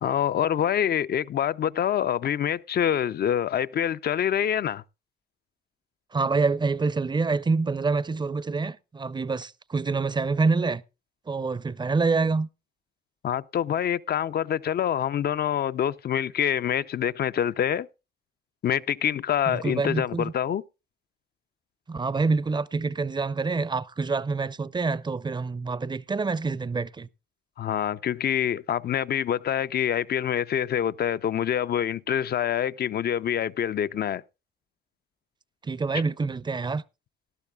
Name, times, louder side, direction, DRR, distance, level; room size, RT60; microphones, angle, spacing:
voice 1, 0.0-4.8 13.2-17.9 18.6-20.6 27.6-34.2, left 9 dB, 50° left, 0.5 m, -26 dB
voice 2, 6.1-10.8 11.3-12.5 19.5-20.3 21.9-27.1 35.6-36.8, right 4 dB, 20° right, 0.6 m, -26 dB
18.5 x 12.0 x 2.3 m
cardioid pair, 70°, 21 cm